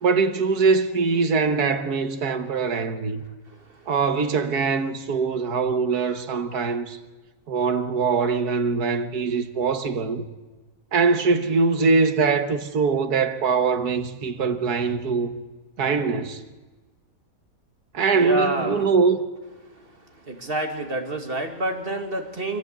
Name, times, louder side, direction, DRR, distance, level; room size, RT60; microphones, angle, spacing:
voice 1, 0.0-3.2 3.9-7.0 7.5-10.3 10.9-15.3 15.8-16.4 17.9-19.2, right 4 dB, 65° right, 1.7 m, -22 dB
voice 2, 18.1-18.9 20.3-22.6, right 1 dB, 35° right, 2.4 m, -28 dB
23.5 x 15.5 x 8.1 m
omnidirectional pair, 1.8 m